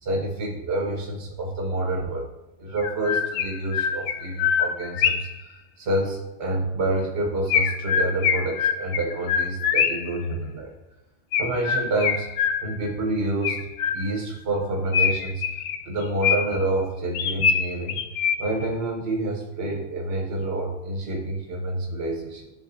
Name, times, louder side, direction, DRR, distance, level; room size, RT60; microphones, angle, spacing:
voice 1, 0.0-2.3 2.6-10.7 11.4-12.3 12.6-18.0 18.4-22.5, right 2 dB, 60° right, 1 dB, 1.0 m, -28 dB
Chirp tweet, 2.0-2.1 2.8-5.4 7.5-10.2 11.3-12.9 13.4-14.3 14.9-16.7 17.1-18.7, left 7 dB, 75° left, 0.9 m, -24 dB
11.0 x 3.7 x 2.6 m, 0.95 s
omnidirectional pair, 1.3 m